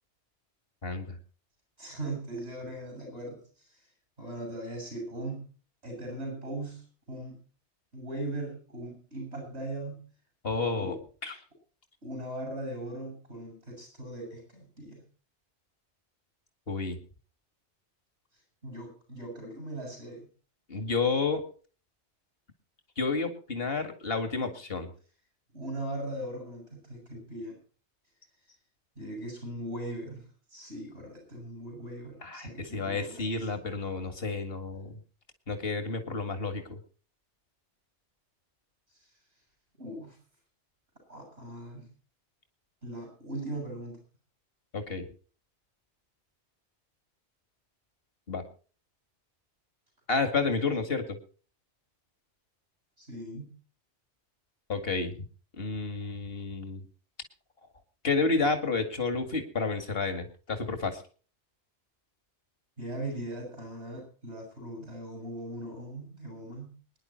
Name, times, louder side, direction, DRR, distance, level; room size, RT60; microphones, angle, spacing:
voice 1, 0.8-1.2 10.4-10.9 11.2-11.3 16.7-17.0 20.7-21.4 23.0-24.9 32.2-35.0 35.5-36.8 44.7-45.1 48.3-48.4 50.1-51.2 54.7-55.2 55.6-56.9 58.0-61.0, left 4 dB, 60° left, 7 dB, 2.5 m, -30 dB
voice 2, 1.8-3.8 4.2-5.4 5.8-7.4 7.9-10.0 10.5-11.0 12.0-15.0 18.6-20.3 25.5-27.6 29.0-33.5 39.0-39.1 39.8-40.2 41.1-41.9 42.8-44.0 53.0-53.5 62.8-66.7, right 1 dB, 75° right, 2 dB, 8.4 m, -39 dB
24.0 x 10.5 x 4.4 m, 0.41 s
omnidirectional pair, 1.1 m